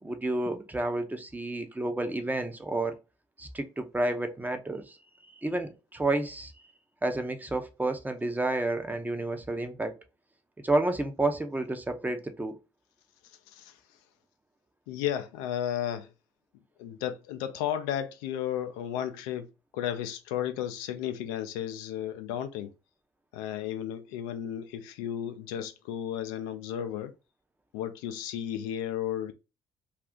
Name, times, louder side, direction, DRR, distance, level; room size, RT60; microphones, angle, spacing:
voice 1, 0.0-2.9 3.4-5.0 5.4-6.5 7.0-9.9 10.6-12.6, right 2 dB, 15° right, 0.6 m, -30 dB
voice 2, 13.2-13.8 14.9-16.1 16.8-22.7 23.3-27.1 27.7-29.3, left 10 dB, 75° left, 0.4 m, -34 dB
2.5 x 2.4 x 3.6 m
hypercardioid pair, 60°, 12 cm